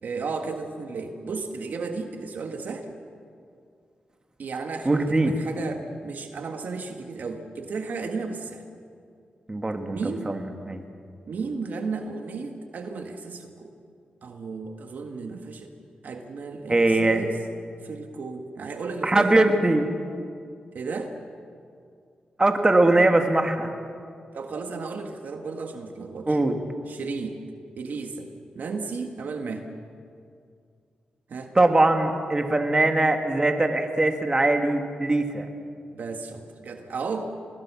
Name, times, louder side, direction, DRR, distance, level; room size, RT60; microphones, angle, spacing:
voice 1, 0.0-2.9 4.4-8.6 9.9-10.3 11.3-13.7 14.2-15.7 16.0-17.4 17.8-19.6 20.7-21.1 22.8-23.1 24.3-26.4 26.9-27.4 27.8-28.3 28.5-29.7 31.3-31.5 35.9-37.2, right 4 dB, 70° right, 5 dB, 1.7 m, -34 dB
voice 2, 4.8-5.4 9.5-10.8 16.7-17.3 19.0-19.9 22.4-23.7 26.3-26.6 31.6-35.5, right 2 dB, 25° right, 5 dB, 2.1 m, -21 dB
25.0 x 20.0 x 6.2 m, 2.3 s
cardioid pair, 65°, 3 cm